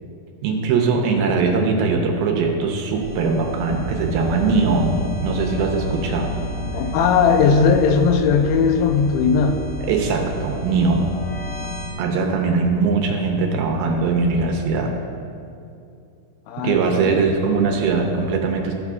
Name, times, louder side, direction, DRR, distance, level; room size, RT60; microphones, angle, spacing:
voice 1, 0.4-6.4 9.8-11.2 12.0-14.9 16.6-18.7, right 4 dB, 80° right, 2 dB, 2.6 m, -21 dB
sound 1, 2.9-11.9, equal, 55° left, 3.5 m, -31 dB
voice 2, 6.6-9.6 16.5-17.3, left 5 dB, 80° left, 5 dB, 2.4 m, -18 dB
13.5 x 7.1 x 2.4 m, 2.5 s
omnidirectional pair, 4.5 m